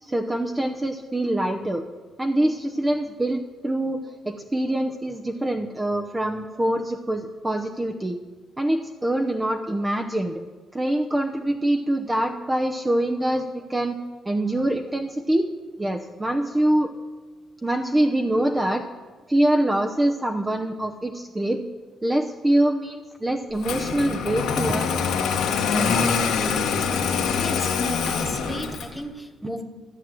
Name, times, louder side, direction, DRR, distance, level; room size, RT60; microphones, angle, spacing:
voice 1, 0.0-1.8 2.2-8.2 8.6-10.4 10.7-15.5 15.8-16.9 17.6-18.8 19.3-21.7 22.0-25.0 25.7-26.1 28.1-28.2, right 1 dB, 15° right, 3 dB, 0.8 m, -24 dB
Engine starting, 23.6-29.0, left 6 dB, 85° left, 1.6 m, -24 dB
voice 2, 27.4-29.6, left 1 dB, 5° left, 5 dB, 1.4 m, -33 dB
14.0 x 7.4 x 7.7 m, 1.4 s
cardioid pair, 90°, 0 cm